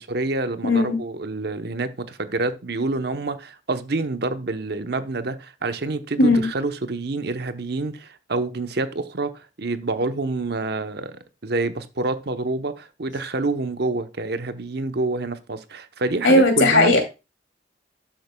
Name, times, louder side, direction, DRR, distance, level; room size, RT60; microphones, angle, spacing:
voice 1, 0.0-11.2 11.4-16.9, right 3 dB, 55° right, 0.9 m, -27 dB
voice 2, 0.6-1.0 6.2-6.5 16.2-17.0, left 2 dB, 80° left, 2.7 m, -17 dB
12.0 x 7.6 x 2.3 m
head